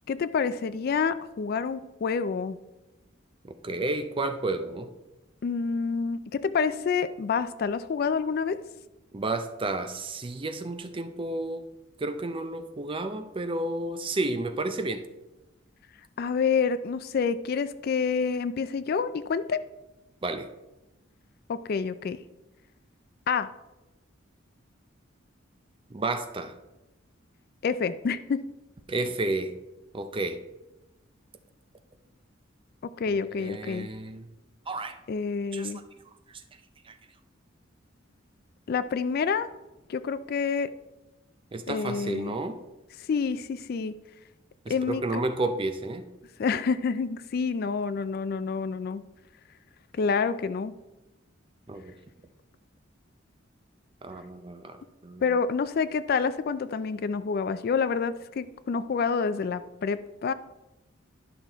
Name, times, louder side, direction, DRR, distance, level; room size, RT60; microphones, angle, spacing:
voice 1, 0.1-2.6 5.4-8.6 16.2-19.6 21.5-22.2 23.3-23.5 27.6-28.4 33.0-33.9 35.1-35.8 38.7-39.5 39.9-40.7 41.7-42.4 43.0-43.9 44.7-45.2 46.4-49.0 49.9-50.7 55.2-60.3, left 5 dB, 50° left, 14 dB, 0.3 m, -28 dB
voice 2, 3.4-4.9 9.1-11.7 12.0-15.0 20.2-20.5 25.9-26.5 28.9-29.5 29.9-30.4 33.1-34.3 34.7-35.0 35.5-35.7 36.9-37.0 41.5-42.6 44.9-46.0 51.7-51.9 54.0-54.8 55.0-55.2, right 2 dB, 25° right, 8 dB, 0.5 m, -31 dB
11.0 x 5.9 x 3.4 m, 1.0 s
head